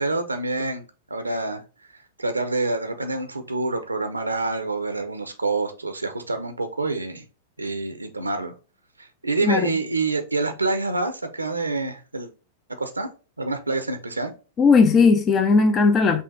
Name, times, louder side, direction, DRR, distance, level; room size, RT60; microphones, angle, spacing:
voice 1, 0.0-1.6 2.2-7.2 7.6-8.5 9.0-12.3 12.8-13.1 13.4-14.3, right 3 dB, 85° right, 0.6 m, -27 dB
voice 2, 9.4-9.7 14.6-16.2, left 4 dB, 25° left, 0.6 m, -17 dB
5.5 x 2.5 x 3.8 m
figure-of-eight pair, 95°, 0 cm